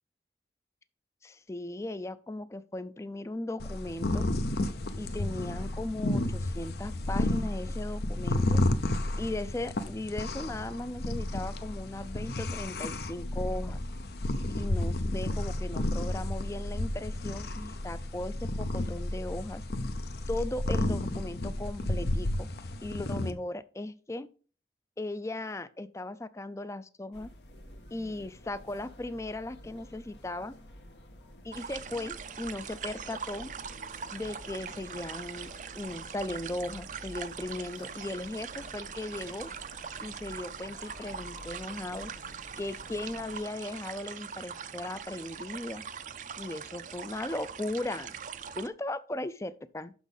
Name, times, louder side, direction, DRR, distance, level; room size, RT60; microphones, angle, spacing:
voice 1, 1.2-4.3 5.0-8.6 9.2-13.8 14.6-19.6 20.3-22.5 22.8-24.3 25.0-27.3 27.9-30.5 31.4-33.5 34.1-39.5 40.0-42.1 42.6-45.8 46.4-48.1 48.6-49.9, left 2 dB, 15° left, 0.4 m, -37 dB
sound 1, 3.6-23.3, left 1 dB, 65° left, 0.7 m, -32 dB
sound 2, 27.1-43.4, left 1 dB, 80° left, 1.3 m, -50 dB
sound 3, 31.5-48.7, right 7 dB, 45° right, 0.5 m, -42 dB
6.2 x 6.1 x 5.3 m
head